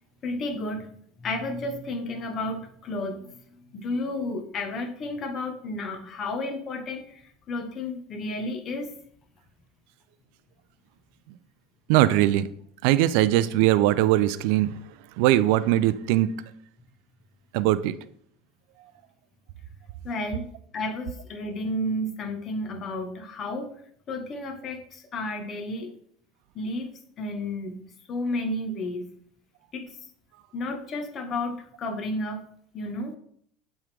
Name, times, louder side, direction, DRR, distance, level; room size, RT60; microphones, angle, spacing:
voice 1, 0.2-0.9 1.2-8.9 20.0-20.5 20.7-23.7 24.1-25.9 26.5-26.9 27.2-27.8 28.1-29.1 29.7-30.0 30.5-32.5 32.7-33.2, left 1 dB, 40° left, 4 dB, 1.1 m, -32 dB
voice 2, 11.9-12.5 12.8-14.8 15.2-16.4 17.5-18.0 18.8-18.9, right 14 dB, 75° right, 15 dB, 0.3 m, -21 dB
7.8 x 3.6 x 3.4 m, 0.64 s
supercardioid pair, 120°, 0 cm